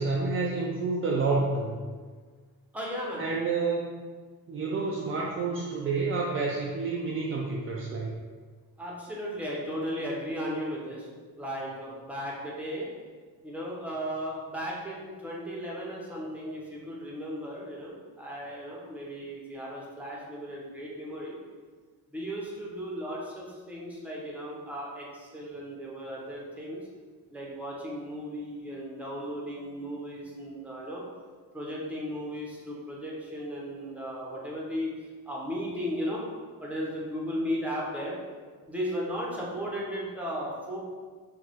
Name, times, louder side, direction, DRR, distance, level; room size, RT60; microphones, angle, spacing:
voice 1, 0.0-1.8 3.2-3.9 4.5-8.1, right 3 dB, 35° right, -2 dB, 0.4 m, -29 dB
voice 2, 2.7-3.2 4.6-4.9 8.8-11.1 11.3-12.9 13.4-21.4 22.1-26.8 27.3-31.0 31.5-34.9 35.3-36.2 36.6-38.2 38.7-40.8, equal, 5° right, -4 dB, 0.7 m, -35 dB
6.3 x 2.3 x 3.4 m, 1.5 s
cardioid pair, 170°, 36 cm